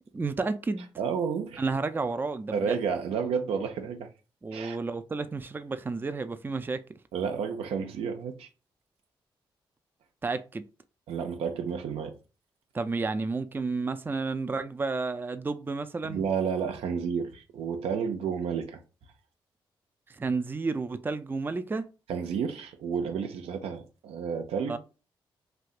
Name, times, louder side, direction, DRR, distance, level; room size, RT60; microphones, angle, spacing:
voice 1, 0.1-0.9 1.6-2.8 4.4-6.8 10.2-10.6 12.7-16.2 20.1-21.9 24.7-24.8, right 3 dB, 20° right, 0.3 m, -31 dB
voice 2, 1.0-1.6 2.5-4.1 4.5-4.8 7.1-8.5 11.1-12.2 16.0-18.8 22.1-24.8, right 6 dB, 85° right, 0.5 m, -31 dB
3.3 x 2.7 x 2.4 m
supercardioid pair, 50°, 10 cm